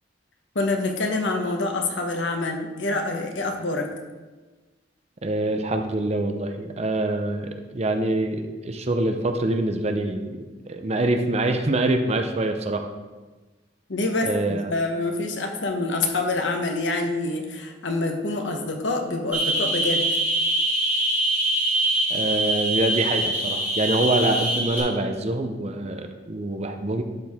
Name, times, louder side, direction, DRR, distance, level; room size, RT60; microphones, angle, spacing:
voice 1, 0.5-3.9 13.9-20.0, left 2 dB, 85° left, 3 dB, 1.0 m, -26 dB
voice 2, 5.2-12.9 14.2-14.7 22.1-27.0, right 2 dB, 35° right, 6 dB, 0.6 m, -25 dB
sound 1, 19.3-24.8, right 1 dB, 10° right, 2.3 m, -24 dB
12.0 x 4.6 x 3.5 m, 1.3 s
head